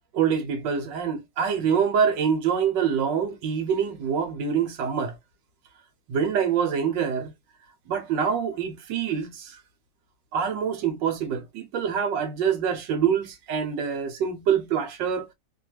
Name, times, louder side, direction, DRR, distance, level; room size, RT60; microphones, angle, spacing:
voice 1, 0.1-5.2 6.1-7.3 7.9-9.6 10.3-15.3, right 7 dB, 85° right, 1.4 m, -25 dB
3.2 x 2.3 x 3.0 m
omnidirectional pair, 1.9 m